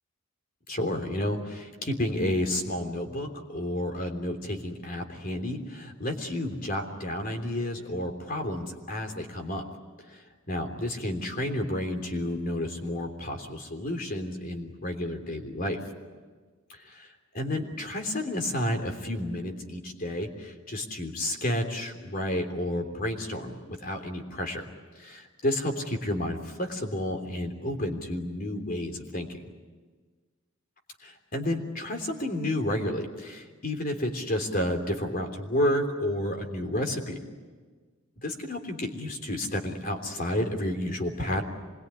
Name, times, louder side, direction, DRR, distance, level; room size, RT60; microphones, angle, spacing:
voice 1, 0.7-9.7 10.1-15.8 16.7-24.7 24.9-29.3 31.0-37.2 38.2-41.4, left 1 dB, 40° left, 5 dB, 3.4 m, -31 dB
26.0 x 22.0 x 9.8 m, 1.4 s
head